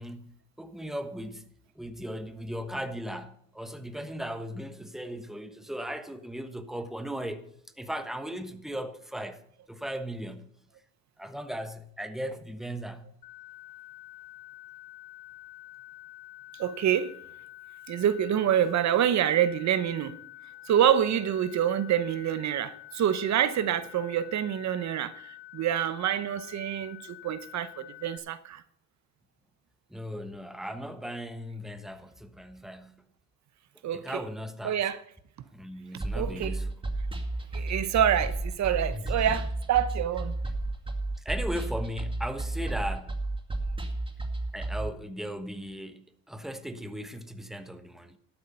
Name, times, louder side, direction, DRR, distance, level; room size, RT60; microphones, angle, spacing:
voice 1, 0.0-1.5 1.7-7.5 7.8-9.4 9.7-10.5 11.2-13.1 29.9-33.0 33.9-34.8 35.5-36.7 38.9-39.3 41.2-43.2 44.5-48.2, equal, ahead, 1.2 m, -37 dB
sound 1, 13.2-28.2, left 16 dB, 80° left, 1.5 m, -48 dB
voice 2, 16.6-17.1 17.9-20.2 20.7-28.6 33.8-34.2 34.6-35.0 36.2-36.5 37.5-40.4, right 10 dB, 65° right, 0.9 m, -27 dB
sound 2, 36.0-44.9, right 2 dB, 15° right, 2.3 m, -32 dB
12.0 x 8.9 x 5.5 m
cardioid pair, 90°, 30 cm